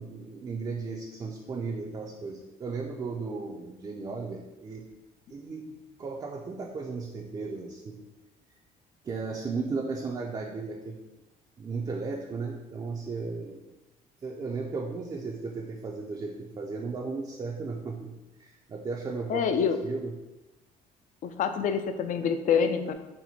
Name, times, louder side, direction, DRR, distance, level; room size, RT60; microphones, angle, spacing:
voice 1, 0.0-4.9 5.3-8.0 9.0-11.1 11.6-13.6 14.2-19.5 19.8-20.2, right 4 dB, 25° right, -1 dB, 0.4 m, -35 dB
voice 2, 19.3-19.8 21.2-22.9, left 7 dB, 50° left, 9 dB, 0.4 m, -26 dB
4.3 x 2.2 x 4.1 m, 1.0 s
cardioid pair, 110°, 17 cm